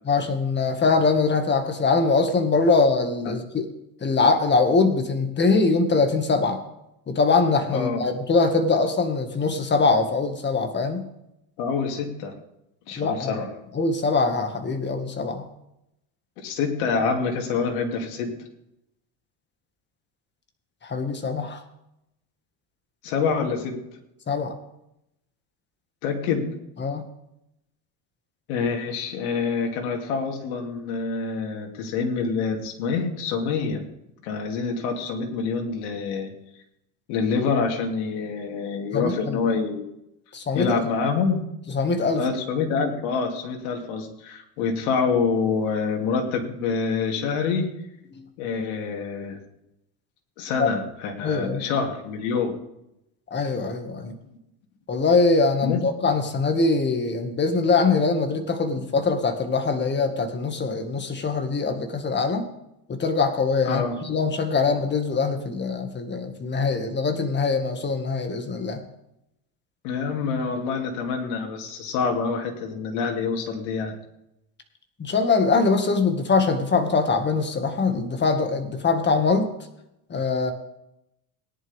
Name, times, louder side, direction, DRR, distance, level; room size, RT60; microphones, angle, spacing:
voice 1, 0.1-3.7 4.0-6.6 7.1-11.1 13.0-13.4 13.7-15.5 20.8-21.6 24.3-24.5 26.8-27.1 38.9-39.4 40.3-40.8 41.7-42.2 48.1-48.3 50.6-50.7 51.2-51.6 53.3-54.1 54.9-62.5 62.9-68.8 75.0-79.5 80.1-80.5, left 4 dB, 25° left, 6 dB, 2.0 m, -23 dB
voice 2, 11.6-12.3 12.9-13.5 16.4-18.3 23.0-23.8 26.0-26.5 28.5-33.8 34.2-36.3 37.1-39.8 40.5-41.4 42.1-47.7 48.4-49.4 50.4-52.5 55.6-55.8 63.6-64.0 69.8-73.9, left 5 dB, 90° left, 2 dB, 2.9 m, -26 dB
18.0 x 10.5 x 3.6 m, 0.83 s
supercardioid pair, 120°, 42 cm